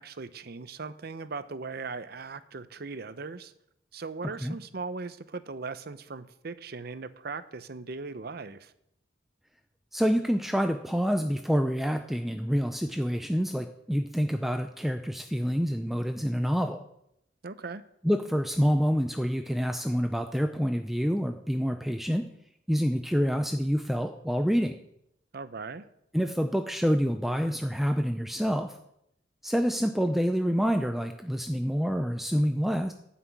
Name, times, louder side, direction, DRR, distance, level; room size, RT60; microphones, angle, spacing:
voice 1, 0.0-3.5 3.9-8.7 17.4-17.8 25.3-25.9, right 4 dB, 55° right, 13 dB, 0.7 m, -39 dB
voice 2, 9.9-16.8 18.0-22.3 22.7-24.7 26.1-28.8 29.4-32.9, equal, ahead, 6 dB, 0.5 m, -27 dB
12.5 x 5.9 x 8.4 m, 0.78 s
head